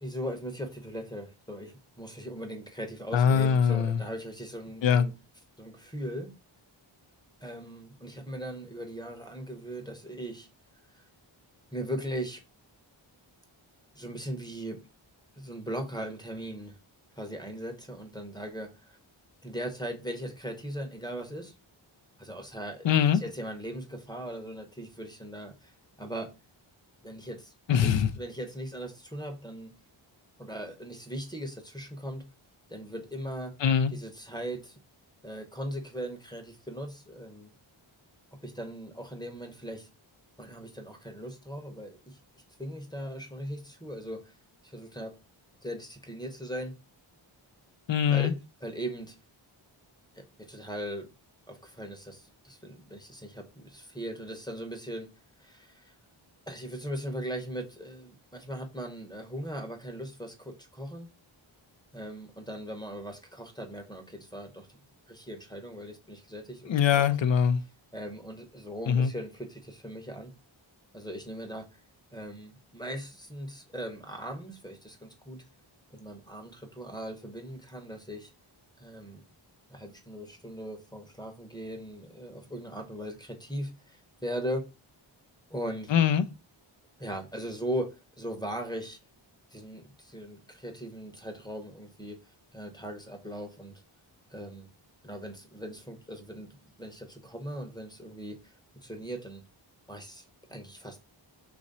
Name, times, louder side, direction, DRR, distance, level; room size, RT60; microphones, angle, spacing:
voice 1, 0.0-5.1 5.6-6.3 7.4-10.5 10.9-11.0 11.7-12.4 13.9-14.8 15.3-16.8 17.2-19.0 19.4-21.5 22.2-22.9 23.2-26.3 27.0-29.7 30.4-32.3 32.7-33.5 33.9-34.8 35.2-37.5 38.3-39.9 40.4-42.2 42.6-44.2 44.6-45.1 45.6-46.8 48.1-48.3 48.6-49.2 50.1-51.1 51.5-55.1 55.4-55.9 56.5-61.1 61.9-64.7 65.1-67.2 67.9-70.3 70.9-71.8 72.1-75.4 75.9-78.3 78.8-79.2 79.7-84.7 85.5-85.9 87.0-89.0 89.5-92.2 92.5-93.8 94.3-94.7 95.0-96.5 96.8-98.5 98.8-99.4 99.9-101.0, equal, 10° left, 0.8 m, -39 dB
voice 2, 3.1-4.0 4.8-5.1 22.8-23.2 27.7-28.1 33.6-33.9 47.9-48.3 66.7-67.6 68.9-69.1 85.9-86.3, left 8 dB, 65° left, 0.5 m, -23 dB
3.0 x 2.5 x 4.0 m
cardioid pair, 40°, 50 cm